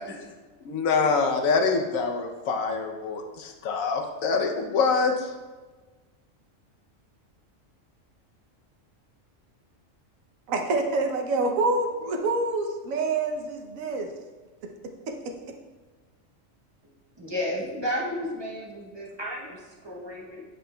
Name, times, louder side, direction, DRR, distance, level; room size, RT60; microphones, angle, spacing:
voice 1, 0.6-5.3, left 4 dB, 90° left, 4 dB, 1.1 m, -25 dB
voice 2, 10.5-14.1 14.6-14.7 15.1-15.2, right 3 dB, 85° right, 4 dB, 1.1 m, -26 dB
voice 3, 17.2-20.4, equal, 25° right, -4 dB, 0.8 m, -32 dB
7.7 x 5.5 x 2.2 m, 1.3 s
omnidirectional pair, 1.4 m